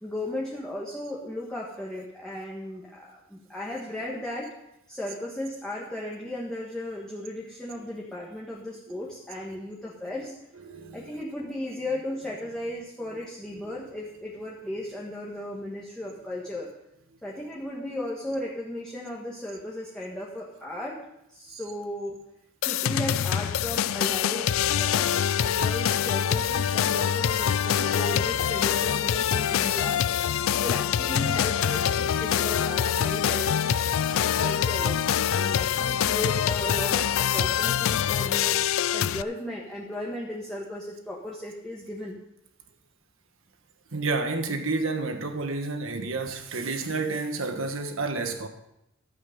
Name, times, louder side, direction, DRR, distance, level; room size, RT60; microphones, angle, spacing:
voice 1, 0.0-4.5 4.9-10.3 10.9-16.7 17.2-21.0 21.3-22.2 22.6-30.0 30.6-38.6 38.9-42.2, left 1 dB, 5° left, 1.6 m, -36 dB
voice 2, 9.0-9.6 10.2-11.2 13.0-13.2 13.5-13.7 21.5-21.7 25.5-25.6 34.1-34.2 43.9-48.5, right 3 dB, 70° right, 1.4 m, -31 dB
sound 1, 22.6-39.2, left 9 dB, 70° left, 0.4 m, -25 dB
12.0 x 8.4 x 5.3 m
head